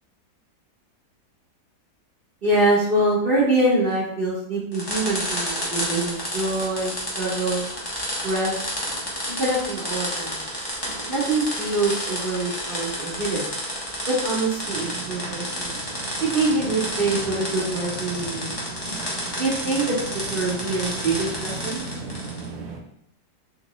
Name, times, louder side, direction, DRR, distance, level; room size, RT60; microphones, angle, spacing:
voice 1, 2.4-7.6 8.2-8.5 9.3-10.5 11.1-13.5 14.1-15.8 16.2-18.6 19.4-20.0 20.3-21.8, right 2 dB, 50° right, -8 dB, 0.6 m, -24 dB
sound 1, 4.7-22.5, equal, 25° left, 0.5 m, -31 dB
sound 2, 14.6-22.8, right 4 dB, 80° right, 1.2 m, -37 dB
3.7 x 3.0 x 2.9 m, 0.74 s
omnidirectional pair, 1.8 m